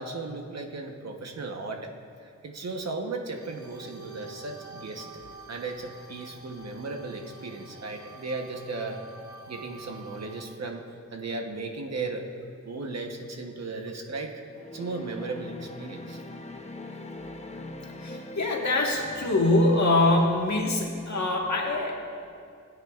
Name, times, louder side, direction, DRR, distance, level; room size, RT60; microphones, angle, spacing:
voice 1, 0.0-1.9 2.2-5.1 5.5-9.0 9.5-10.9 11.1-12.2 12.6-14.4 14.7-16.2, right 3 dB, 60° right, 3 dB, 1.0 m, -36 dB
sound 1, 3.3-10.4, right 3 dB, 75° right, 1.5 m, -47 dB
sound 2, 14.5-20.3, left 2 dB, 20° left, 0.7 m, -42 dB
voice 2, 18.0-22.0, left 2 dB, 65° left, 0 dB, 1.5 m, -24 dB
20.0 x 9.0 x 2.4 m, 2.4 s
wide cardioid pair, 130°, 30 cm